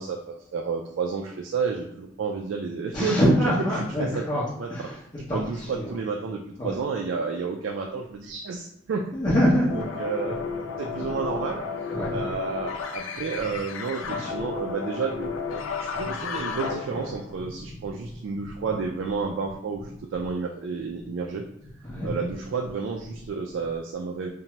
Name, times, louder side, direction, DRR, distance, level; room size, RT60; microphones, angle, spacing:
voice 1, 0.0-3.3 4.0-4.2 4.6-4.7 5.3-9.1 9.7-10.4 10.8-15.3 15.9-19.8 20.1-21.4 22.0-24.3, right 5 dB, 70° right, 1 dB, 0.3 m, -30 dB
voice 2, 2.9-4.4 4.7-5.0 5.3-6.0 6.6-6.8 9.1-9.9 11.9-12.2 13.4-13.5 14.0-14.2 15.7-16.1 17.3-17.9 21.8-22.2, equal, 25° left, -10 dB, 0.6 m, -26 dB
sound 1, 9.7-17.4, left 5 dB, 75° left, 0.3 m, -33 dB
2.7 x 2.1 x 2.9 m, 0.77 s
head